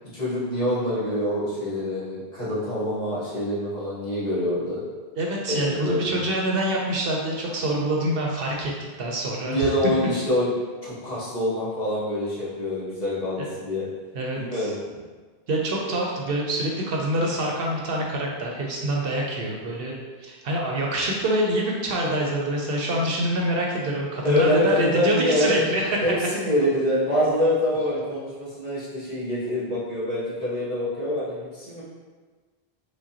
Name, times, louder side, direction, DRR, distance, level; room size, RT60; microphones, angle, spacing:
voice 1, 0.1-4.8 5.5-6.2 9.4-10.5 10.8-13.9 14.4-14.7 24.2-25.6 26.0-31.8, left 1 dB, 45° left, -9 dB, 1.3 m, -25 dB
voice 2, 5.2-8.7 9.0-9.7 13.4-13.5 14.1-14.7 15.5-26.0, right 1 dB, 70° right, -1 dB, 0.8 m, -26 dB
4.7 x 2.2 x 2.8 m, 1.4 s
omnidirectional pair, 1.1 m